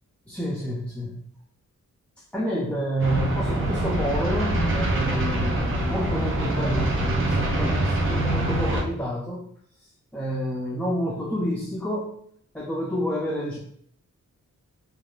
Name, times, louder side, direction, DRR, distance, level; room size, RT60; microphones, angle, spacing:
voice 1, 0.3-1.2 2.3-9.4 9.8-12.2 12.5-13.6, equal, 5° left, -4 dB, 0.4 m, -29 dB
sound 1, 3.0-8.8, right 1 dB, 40° right, 0.7 m, -25 dB
3.3 x 2.3 x 2.3 m, 0.64 s
wide cardioid pair, 105°, 31 cm